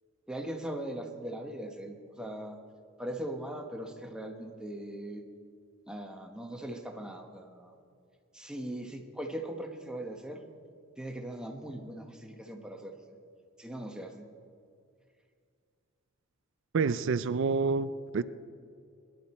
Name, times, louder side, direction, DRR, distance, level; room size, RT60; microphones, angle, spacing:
voice 1, 0.3-2.6 3.0-5.2 5.9-7.8 8.3-10.5 11.0-13.2 13.6-14.3, right 1 dB, 5° right, 2 dB, 1.1 m, -40 dB
voice 2, 16.7-18.2, right 4 dB, 60° right, 15 dB, 0.4 m, -28 dB
21.0 x 11.5 x 4.3 m, 2.3 s
head